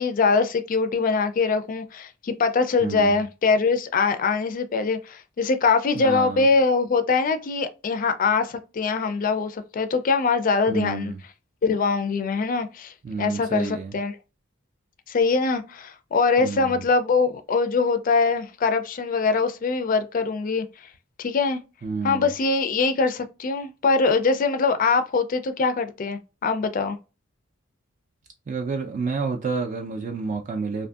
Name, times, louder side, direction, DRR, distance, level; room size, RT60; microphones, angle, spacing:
voice 1, 0.0-11.1 11.6-12.9 13.2-14.2 15.1-20.7 21.2-21.6 22.0-27.0, left 4 dB, 40° left, 0.3 m, -23 dB
voice 2, 2.8-3.2 6.0-6.5 10.7-11.2 13.0-13.9 16.4-16.9 21.8-22.3 28.5-30.9, right 4 dB, 40° right, 0.3 m, -29 dB
2.6 x 2.5 x 2.3 m
head